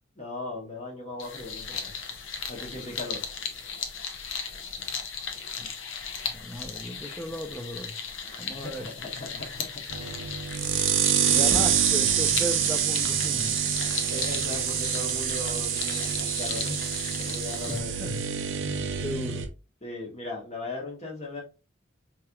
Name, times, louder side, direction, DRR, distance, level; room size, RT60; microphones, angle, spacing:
voice 1, 0.1-1.9 2.5-3.2 8.3-10.4 14.1-16.8 17.2-18.1 18.8-19.0 19.8-21.4, left 2 dB, 35° left, 1.3 m, -38 dB
sound 1, 1.2-17.8, left 6 dB, 75° left, 0.7 m, -37 dB
voice 2, 6.3-7.9 8.4-8.9 11.3-13.7 17.7-18.2 19.0-19.5, equal, 10° left, 0.6 m, -35 dB
sound 2, 9.9-19.5, right 8 dB, 75° right, 0.6 m, -26 dB
4.5 x 2.9 x 2.4 m
head